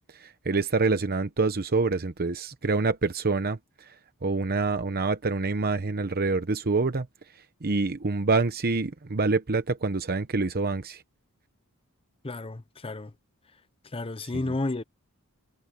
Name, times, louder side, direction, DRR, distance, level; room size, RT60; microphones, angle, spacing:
voice 1, 0.1-3.9 4.2-7.1 7.3-11.0 14.2-14.4, right 3 dB, 45° right, 0.9 m, -26 dB
voice 2, 12.2-13.1 13.9-14.8, left 2 dB, 25° left, 0.7 m, -31 dB
head